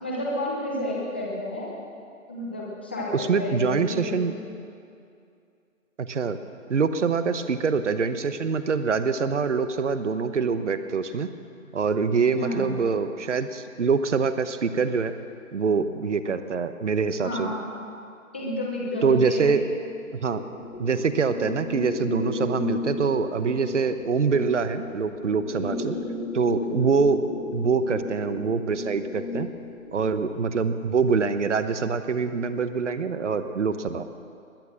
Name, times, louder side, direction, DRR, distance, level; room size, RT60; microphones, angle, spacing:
voice 1, 0.0-1.7 2.3-4.2 12.3-12.7 17.2-17.6 18.3-19.6 25.5-26.2 26.8-26.9, left 1 dB, 10° left, -4 dB, 0.8 m, -31 dB
voice 2, 3.1-4.3 6.0-6.4 6.7-11.3 11.7-15.1 15.5-17.5 19.0-19.6 20.2-20.4 20.8-26.0 26.3-27.2 27.5-29.5 29.9-34.0, right 5 dB, 55° right, 11 dB, 0.9 m, -24 dB
sound 1, 20.3-30.2, left 3 dB, 55° left, 2.3 m, -34 dB
21.0 x 9.6 x 6.4 m, 2.4 s
figure-of-eight pair, 160°, 43 cm